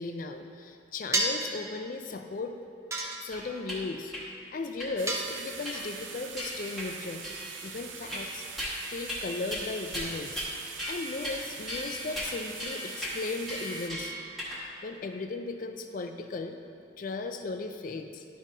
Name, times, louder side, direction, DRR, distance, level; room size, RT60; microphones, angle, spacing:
voice 1, 0.0-2.5 3.2-4.1 4.5-7.2 7.6-8.4 8.9-10.5 10.9-14.1 14.8-16.6 17.0-18.2, left 3 dB, 45° left, 6 dB, 0.4 m, -36 dB
sound 1, 1.1-1.5 2.9-3.6 5.1-5.8, right 1 dB, 15° right, 0.5 m, -30 dB
sound 2, 3.3-3.8 4.1-4.2 4.8-4.9 5.7-6.0 6.4-6.9 7.2-7.6 8.1-8.8 9.1-9.2 9.5-9.6 9.9-10.5 10.8-11.4 11.7-14.6, equal, ahead, 1.2 m, -37 dB
sound 3, 5.0-13.9, right 6 dB, 80° right, 0.6 m, -43 dB
11.0 x 5.3 x 2.7 m, 2.3 s
head